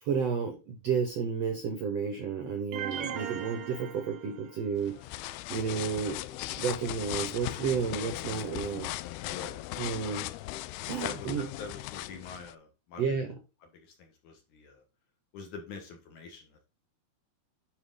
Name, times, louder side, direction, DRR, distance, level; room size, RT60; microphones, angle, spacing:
voice 1, 0.0-4.9 5.2-6.2 6.5-8.9 9.8-10.3 10.9-11.5 13.0-13.3, right 6 dB, 65° right, 5 dB, 1.6 m, -32 dB
sound 1, 2.7-4.8, right 9 dB, 85° right, 1.5 m, -39 dB
sound 2, 4.8-12.5, left 16 dB, 85° left, 2.5 m, -38 dB
voice 2, 11.0-13.0 13.7-14.8 15.3-16.7, left 4 dB, 60° left, 3 dB, 2.5 m, -45 dB
9.7 x 4.9 x 3.9 m, 0.29 s
omnidirectional pair, 4.5 m